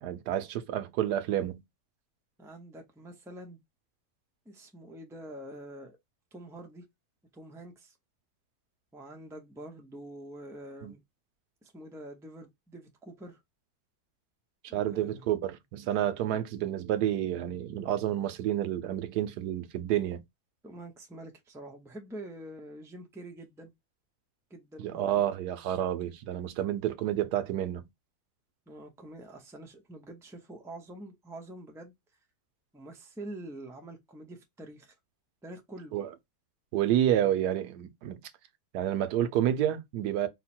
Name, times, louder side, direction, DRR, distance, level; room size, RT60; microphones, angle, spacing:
voice 1, 0.0-1.6 10.8-10.9 14.7-20.2 24.8-27.9 35.9-36.1 36.7-38.2 38.7-40.3, right 11 dB, 85° right, 1.2 m, -29 dB
voice 2, 2.4-3.6 4.5-6.0 6.3-6.8 7.3-7.9 8.9-11.0 11.6-13.4 14.7-15.2 20.6-23.7 24.5-25.2 28.7-31.9 32.7-34.9 35.4-36.0, right 1 dB, 5° right, 0.5 m, -46 dB
4.6 x 2.2 x 4.2 m
omnidirectional pair, 1.7 m